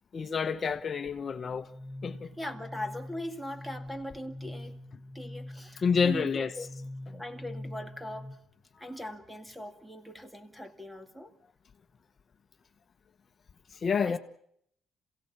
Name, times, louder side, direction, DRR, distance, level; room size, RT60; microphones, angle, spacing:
voice 1, 0.1-1.7 2.0-2.3 5.8-6.5 13.7-14.2, left 6 dB, 45° left, 1.0 m, -28 dB
sound 1, 1.4-8.3, left 1 dB, 30° right, 2.4 m, -44 dB
voice 2, 2.4-4.8 5.1-6.7 7.1-8.4 8.8-11.3 14.0-14.2, left 1 dB, 5° right, 2.5 m, -40 dB
27.5 x 17.0 x 8.6 m
cardioid pair, 90°, 0 cm